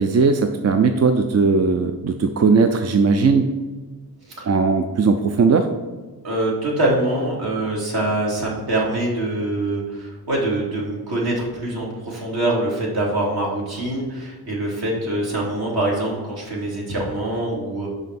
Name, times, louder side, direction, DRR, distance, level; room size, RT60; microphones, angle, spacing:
voice 1, 0.0-3.5 4.4-5.7, right 4 dB, 40° right, 6 dB, 0.5 m, -18 dB
voice 2, 6.2-17.9, right 1 dB, 65° right, -4 dB, 2.6 m, -24 dB
5.6 x 5.6 x 5.9 m, 1.3 s
wide cardioid pair, 125°, 40 cm